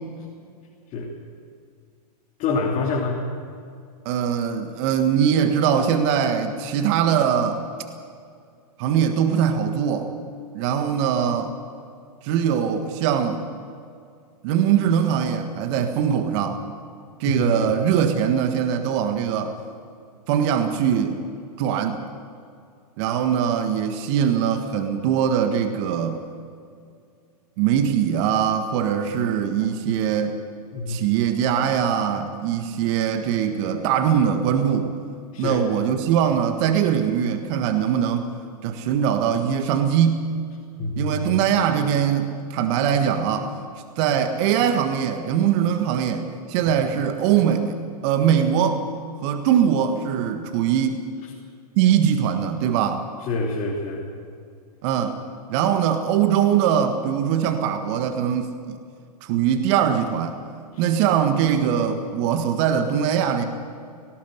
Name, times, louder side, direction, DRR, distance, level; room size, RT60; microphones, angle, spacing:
voice 1, 2.4-3.2 17.3-17.7 30.7-31.0 35.3-35.6 40.8-41.2 53.3-54.1 60.7-60.8, left 3 dB, 40° left, -2 dB, 3.2 m, -26 dB
voice 2, 4.0-7.6 8.8-10.1 10.5-11.5 12.2-13.4 14.4-16.6 17.2-19.6 20.3-21.2 21.6-22.0 23.0-26.2 27.6-30.3 30.9-34.9 35.4-38.3 38.6-40.3 41.0-43.5 44.0-48.8 49.2-51.0 51.8-53.0 54.8-55.2 55.5-58.5 59.2-60.4 60.8-63.4, right 8 dB, 45° right, 7 dB, 1.6 m, -22 dB
18.5 x 18.5 x 8.1 m, 2.3 s
hypercardioid pair, 110°, 20 cm